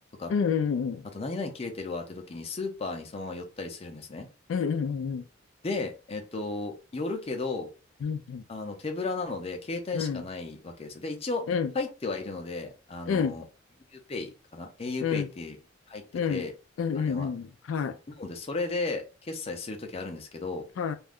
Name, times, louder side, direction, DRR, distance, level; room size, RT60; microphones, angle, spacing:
voice 1, 0.3-1.0 4.5-5.2 8.0-8.4 9.9-10.2 11.5-11.7 13.1-13.3 15.0-15.3 16.1-16.4 16.8-17.9 20.8-21.0, left 6 dB, 85° left, 0.3 m, -28 dB
voice 2, 1.0-4.3 5.6-7.7 8.5-11.5 11.7-13.5 13.9-15.6 15.9-16.0 16.3-16.5 16.9-17.3 18.2-20.7, left 3 dB, 30° left, 0.5 m, -34 dB
2.4 x 2.2 x 3.5 m
head